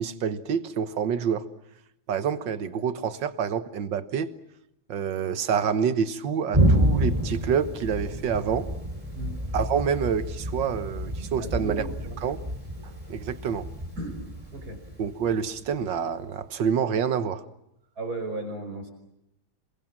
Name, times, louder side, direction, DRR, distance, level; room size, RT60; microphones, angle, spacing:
voice 1, 0.0-1.5 2.1-4.3 4.9-8.7 9.5-11.9 12.2-12.4 12.8-13.7 15.0-17.4, right 7 dB, 60° right, 12 dB, 1.9 m, -27 dB
Thunder, 6.5-16.0, right 1 dB, 15° right, 4.2 m, -28 dB
voice 2, 11.4-11.9 14.0-14.2 14.5-14.8 18.0-18.9, right 2 dB, 45° right, 4 dB, 5.5 m, -34 dB
28.0 x 22.0 x 7.5 m, 0.83 s
omnidirectional pair, 2.3 m